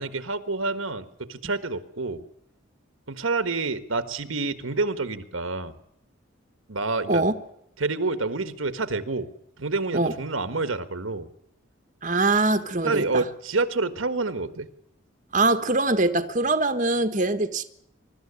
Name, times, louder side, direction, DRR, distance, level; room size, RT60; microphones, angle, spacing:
voice 1, 0.0-2.2 3.1-5.8 6.7-7.2 7.8-9.3 9.6-11.3 12.8-14.7, right 3 dB, 85° right, 11 dB, 1.6 m, -28 dB
voice 2, 12.0-13.2 15.3-17.6, right 2 dB, 40° right, 8 dB, 1.3 m, -23 dB
23.5 x 13.0 x 9.9 m, 0.75 s
head